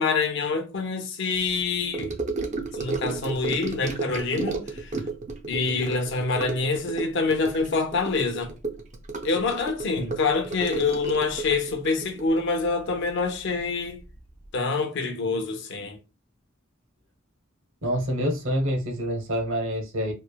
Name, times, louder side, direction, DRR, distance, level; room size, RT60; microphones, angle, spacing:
voice 1, 0.0-2.1 2.7-4.9 5.5-8.5 9.2-14.0 14.5-16.0, left 4 dB, 55° left, 0.5 m, -26 dB
Gurgling / Sink (filling or washing) / Trickle dribble, 1.9-13.6 13.8-14.2 14.4-14.5, right 3 dB, 35° right, 0.4 m, -33 dB
voice 2, 17.8-20.1, equal, 65° right, 0.8 m, -27 dB
3.1 x 2.0 x 2.2 m
head